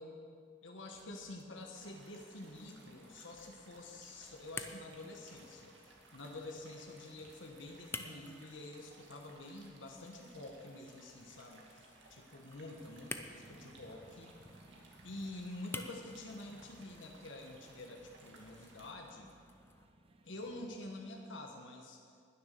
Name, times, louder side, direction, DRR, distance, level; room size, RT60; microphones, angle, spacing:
voice 1, 0.0-11.8 12.1-14.3 15.0-19.3 20.2-22.0, left 2 dB, 85° left, 2 dB, 1.3 m, -48 dB
sound 1, 0.9-19.9, left 3 dB, 15° left, 0.7 m, -53 dB
sound 2, 1.7-18.9, right 3 dB, 70° right, 2.3 m, -61 dB
sound 3, 12.6-21.5, right 1 dB, 30° right, 0.8 m, -63 dB
20.0 x 7.1 x 6.7 m, 2.2 s
head